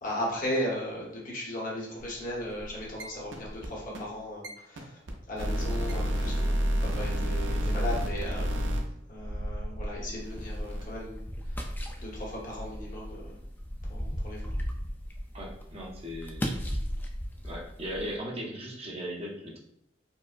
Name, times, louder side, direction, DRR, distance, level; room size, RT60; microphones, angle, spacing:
voice 1, 0.0-5.0 5.3-6.6 6.8-8.6 9.1-11.7 12.0-13.4 13.9-14.5, left 1 dB, 45° left, -4 dB, 1.0 m, -36 dB
sound 1, 2.0-2.2 2.5-3.0 3.3-3.7 3.9-4.0 4.4-4.5 4.8-4.9 5.1-5.2 5.4-10.8, equal, 70° right, 0.6 m, -30 dB
sound 2, 10.4-18.2, equal, 10° left, 0.3 m, -36 dB
voice 2, 15.3-16.5 17.4-19.6, equal, 30° right, -1 dB, 0.7 m, -38 dB
4.5 x 2.0 x 2.5 m, 0.76 s
head